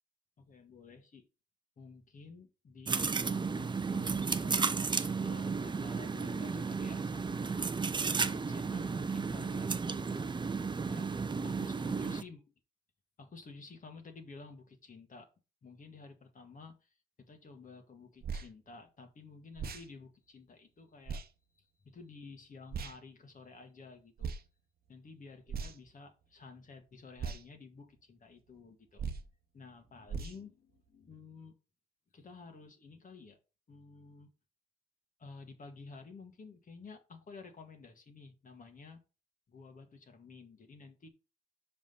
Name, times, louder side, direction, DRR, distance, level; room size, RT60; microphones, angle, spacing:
voice 1, 0.4-1.3 1.8-7.7 8.2-10.3 10.9-11.1 11.4-12.4 13.2-15.3 15.6-24.4 24.9-29.1 29.5-31.5 32.1-33.4 33.7-34.3 35.2-39.0 39.5-41.1, left 4 dB, 40° left, 5 dB, 1.9 m, -52 dB
sound 1, 2.9-12.2, right 5 dB, 25° right, 0.6 m, -33 dB
sound 2, 18.2-18.5 19.6-19.9 21.1-21.3 22.7-23.0 24.2-24.4 25.5-25.9 27.2-27.4 29.0-29.3 30.1-30.4, right 5 dB, 50° right, 1.0 m, -38 dB
5.9 x 5.1 x 5.4 m, 0.31 s
cardioid pair, 90°, 20 cm